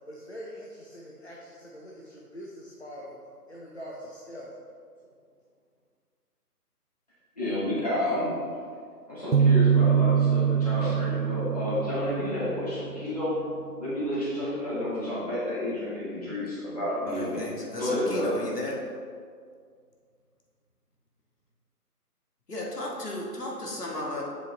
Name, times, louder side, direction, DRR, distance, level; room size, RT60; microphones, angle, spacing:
voice 1, 0.0-3.2 3.5-4.6, equal, 45° left, -4 dB, 0.8 m, -43 dB
voice 2, 7.4-8.3 9.1-13.4 13.8-17.5 17.8-18.3, left 1 dB, 25° left, -10 dB, 1.8 m, -30 dB
sound 1, 9.3-13.0, right 7 dB, 70° right, 0.6 m, -24 dB
voice 3, 17.1-18.8 22.5-24.2, left 1 dB, 70° left, -2 dB, 1.6 m, -34 dB
7.4 x 5.3 x 3.3 m, 2.1 s
figure-of-eight pair, 175°, 48 cm